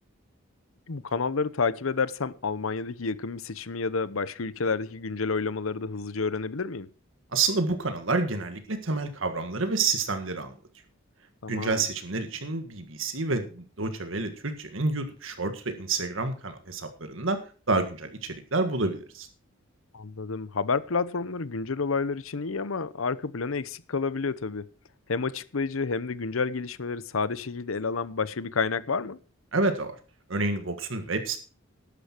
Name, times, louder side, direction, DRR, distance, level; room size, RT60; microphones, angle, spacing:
voice 1, 0.9-6.9 11.4-11.8 19.9-24.6 25.1-29.2, left 4 dB, 90° left, 0.8 m, -29 dB
voice 2, 7.3-10.5 11.5-17.4 17.7-19.3 29.5-29.9 30.3-31.4, right 3 dB, 75° right, 1.7 m, -28 dB
12.0 x 10.0 x 4.5 m
head